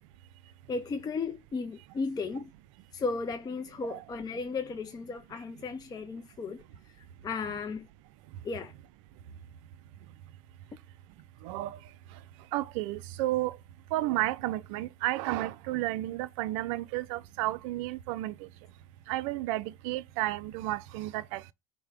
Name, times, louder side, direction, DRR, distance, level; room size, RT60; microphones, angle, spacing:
voice 1, 0.7-2.4 2.9-6.6 7.2-7.9 8.4-8.7, left 4 dB, 20° left, 0.5 m, -35 dB
voice 2, 11.4-11.8 12.5-13.6 13.9-18.5 19.1-21.5, right 16 dB, 65° right, 0.4 m, -32 dB
5.5 x 2.1 x 3.4 m
hypercardioid pair, 80°, 18 cm